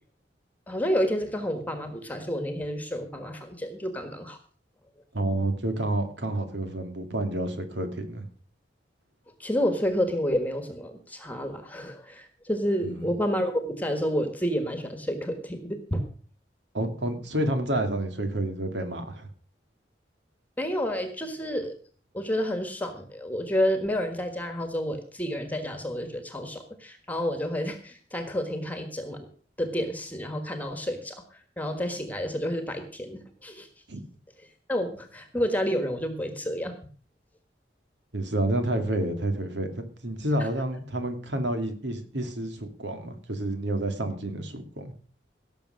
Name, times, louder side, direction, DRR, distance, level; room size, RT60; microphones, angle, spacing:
voice 1, 0.7-4.4 9.4-16.1 20.6-21.7 22.1-29.3 29.6-31.2 31.6-33.7 34.7-36.8, equal, 10° left, 8 dB, 1.5 m, -29 dB
voice 2, 5.1-8.2 12.8-13.1 16.7-19.3 33.9-34.0 38.1-44.9, right 1 dB, 80° right, 7 dB, 2.4 m, -29 dB
17.5 x 7.0 x 6.4 m, 0.42 s
head